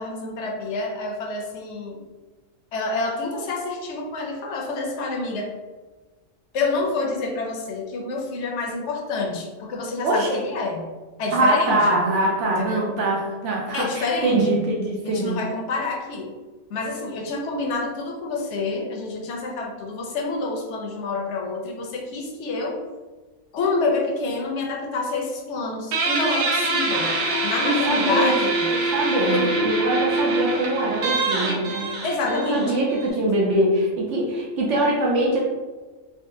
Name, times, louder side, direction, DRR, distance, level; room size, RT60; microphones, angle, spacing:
voice 1, 0.0-2.0 2.7-5.5 6.5-10.9 11.2-12.0 12.5-12.9 13.7-14.6 15.0-16.3 16.7-22.8 23.5-27.1 27.4-28.7 29.2-29.6 32.0-32.8, left 3 dB, 65° left, 0 dB, 0.8 m, -28 dB
voice 2, 10.0-10.4 11.3-15.4 27.6-31.9 32.2-35.4, right 1 dB, 70° right, -2 dB, 0.8 m, -23 dB
Guitar, 25.9-33.1, right 2 dB, 85° right, 1.0 m, -24 dB
3.6 x 2.1 x 2.6 m, 1.3 s
omnidirectional pair, 1.4 m